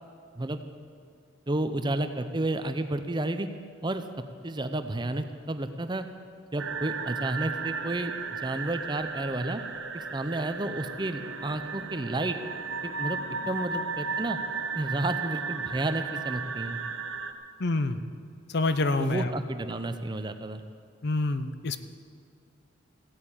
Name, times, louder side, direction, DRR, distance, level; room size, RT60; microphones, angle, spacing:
voice 1, 1.5-3.5 3.8-4.0 4.4-6.0 6.5-9.6 9.9-12.4 12.8-13.2 13.5-14.4 14.7-16.8 19.0-20.6, right 2 dB, 20° right, 9 dB, 0.6 m, -31 dB
sound 1, 6.6-17.3, right 5 dB, 65° right, 1.0 m, -35 dB
voice 2, 17.6-18.0 18.5-19.3 21.0-21.8, left 2 dB, 55° left, 11 dB, 0.7 m, -27 dB
15.5 x 8.9 x 8.7 m, 2.2 s
head